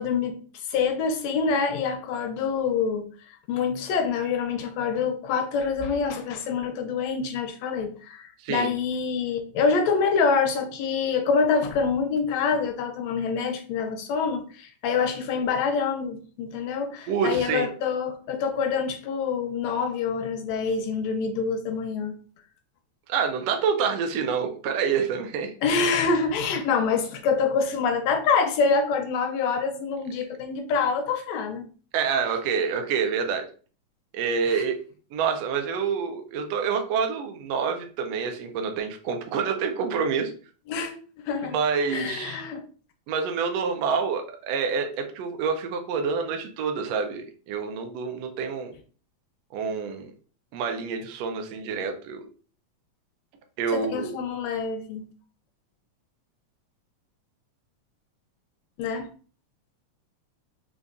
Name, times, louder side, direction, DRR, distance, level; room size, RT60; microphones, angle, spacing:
voice 1, 0.0-22.2 25.6-31.7 34.5-34.6 40.7-41.6 41.9-42.6 53.7-55.1 58.8-59.1, left 5 dB, 80° left, 1.5 m, -26 dB
voice 2, 17.1-17.7 23.1-25.5 31.9-33.5 34.1-34.8 35.1-40.3 41.5-42.4 43.1-48.7 49.5-50.1 50.5-52.2 53.6-54.1, right 6 dB, 80° right, 1.5 m, -27 dB
5.3 x 2.4 x 2.4 m
omnidirectional pair, 3.4 m